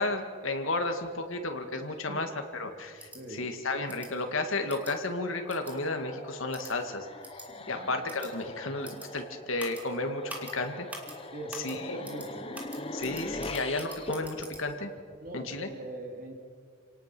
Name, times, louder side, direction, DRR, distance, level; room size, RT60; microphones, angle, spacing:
voice 1, 0.0-7.1 7.7-10.9 11.5-12.3 12.9-14.9 15.3-15.7, left 2 dB, 80° left, 5 dB, 2.1 m, -33 dB
sound 1, 3.0-3.2 3.9-4.1 4.7-4.9 5.5-5.7 6.5-6.7 7.2-7.5 8.1-8.3 8.8-9.1 9.6-9.8 10.3-10.5 10.9-11.1 11.5-11.7 12.0-12.3 12.5-14.6, right 1 dB, 5° right, 2.6 m, -44 dB
voice 2, 3.1-3.5 7.5-7.9 11.3-12.6 15.2-16.4, right 1 dB, 45° right, 1 dB, 3.2 m, -42 dB
sound 2, 5.3-15.6, left 2 dB, 25° left, 1.1 m, -42 dB
28.0 x 18.5 x 6.2 m, 2.2 s
head